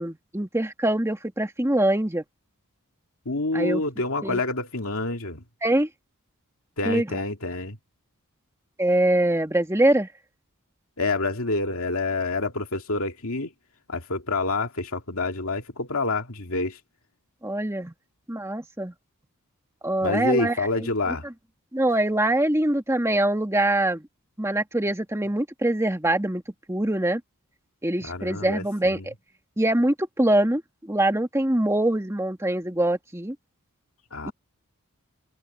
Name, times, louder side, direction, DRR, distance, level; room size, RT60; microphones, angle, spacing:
voice 1, 0.0-2.2 3.5-3.8 4.2-4.4 5.6-5.9 6.8-7.2 8.8-10.1 17.4-17.9 18.3-18.9 19.8-20.9 21.7-24.1 24.4-26.4 26.7-27.2 27.8-29.1 29.6-33.4 34.3-34.4, right 1 dB, 10° right, 2.0 m, -24 dB
voice 2, 3.3-5.4 6.8-7.8 11.0-13.5 13.9-16.8 20.0-21.2 28.0-29.1 34.1-34.3, left 3 dB, 70° left, 2.6 m, -27 dB
head